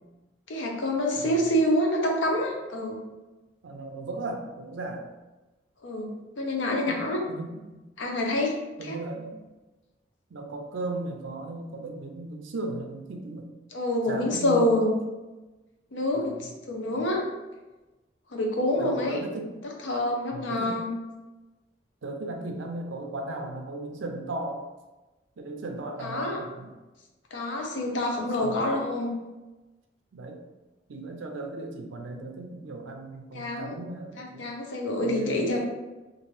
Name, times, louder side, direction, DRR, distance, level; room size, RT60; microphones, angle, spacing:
voice 1, 0.5-3.0 5.8-7.2 8.0-8.5 8.8-9.0 13.7-14.9 15.9-17.3 18.3-19.2 19.8-20.9 26.0-26.4 27.3-29.1 33.3-33.8 34.2-35.6, left 1 dB, 80° left, 0 dB, 0.6 m, -27 dB
voice 2, 1.2-1.5 2.2-2.4 3.6-5.1 6.9-7.0 7.3-7.8 8.8-9.4 10.3-13.5 14.1-14.9 16.1-16.5 16.9-17.1 18.7-19.6 20.3-20.8 22.0-24.6 25.4-26.7 28.4-28.6 30.1-30.4 30.9-34.5 35.0-35.6, right 2 dB, 85° right, 4 dB, 0.5 m, -36 dB
3.0 x 2.5 x 3.0 m, 1.1 s
head